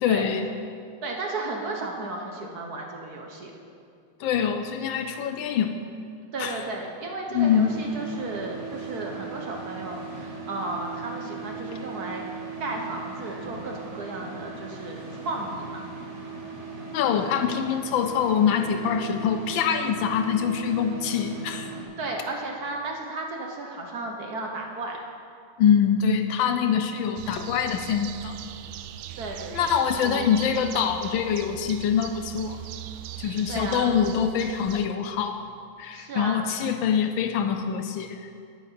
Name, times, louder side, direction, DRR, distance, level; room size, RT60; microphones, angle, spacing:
voice 1, 0.0-0.5 4.2-5.7 6.4-6.6 7.3-7.8 16.9-21.7 25.6-28.4 29.5-32.6 33.2-35.5 35.8-38.3, left 7 dB, 75° left, 7 dB, 1.3 m, -24 dB
voice 2, 1.0-3.5 6.3-12.2 12.6-15.0 15.2-15.9 22.0-25.0 29.2-29.7 30.0-30.2 33.5-33.9 35.9-36.5, right 2 dB, 55° right, 1 dB, 1.3 m, -34 dB
sound 1, 7.4-21.8, right 4 dB, 40° right, 1.5 m, -38 dB
sound 2, 27.1-34.9, right 11 dB, 85° right, 0.9 m, -39 dB
9.7 x 9.1 x 5.7 m, 2.4 s
omnidirectional pair, 2.3 m